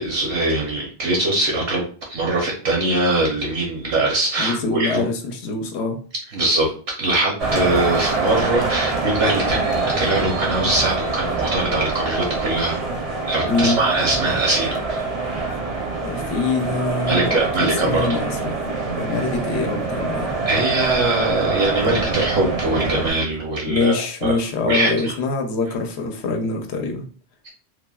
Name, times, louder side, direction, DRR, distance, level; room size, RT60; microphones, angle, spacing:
voice 1, 0.0-5.0 6.3-6.7 7.0-12.8 13.3-15.0 17.1-18.1 20.5-23.9 24.2-24.3 24.6-25.1 27.4-27.5, right 2 dB, 70° right, -2 dB, 0.9 m, -22 dB
voice 2, 4.4-6.0 13.5-13.8 16.0-20.3 23.7-27.0, left 3 dB, 80° left, 5 dB, 0.8 m, -24 dB
sound 1, 7.4-23.1, right 3 dB, 45° right, 0.5 m, -25 dB
3.2 x 2.0 x 2.2 m, 0.41 s
omnidirectional pair, 1.1 m